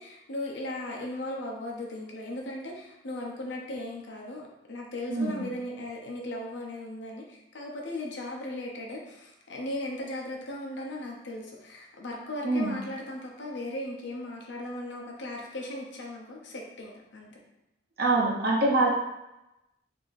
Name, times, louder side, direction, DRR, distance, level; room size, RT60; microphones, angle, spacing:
voice 1, 0.0-17.4, left 1 dB, 80° left, -1 dB, 0.7 m, -37 dB
voice 2, 5.1-5.4 12.4-12.7 18.0-18.9, right 2 dB, 60° right, -2 dB, 0.8 m, -24 dB
3.9 x 2.8 x 2.6 m, 0.91 s
head